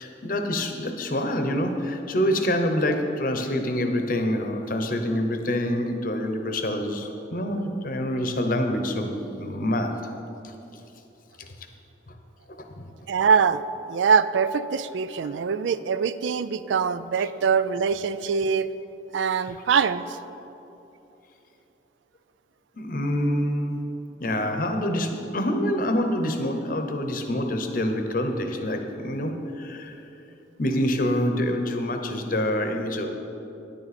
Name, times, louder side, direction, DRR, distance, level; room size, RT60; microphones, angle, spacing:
voice 1, 0.0-10.1 11.4-11.5 12.1-12.2 12.8-12.9 22.8-23.9 24.2-30.0 30.6-33.1, left 1 dB, 50° left, 5 dB, 0.8 m, -26 dB
voice 2, 13.1-13.6 13.9-18.7 19.1-20.0, right 6 dB, 85° right, 14 dB, 0.3 m, -23 dB
10.0 x 9.6 x 4.2 m, 3.0 s
head